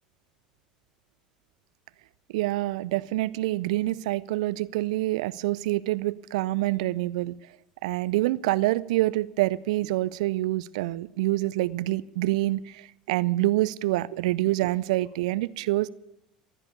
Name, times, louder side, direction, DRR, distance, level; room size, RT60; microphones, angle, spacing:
voice 1, 2.3-7.3 7.8-15.9, right 17 dB, 65° right, 19 dB, 0.4 m, -26 dB
15.5 x 10.5 x 6.9 m, 0.85 s
hypercardioid pair, 70°, 4 cm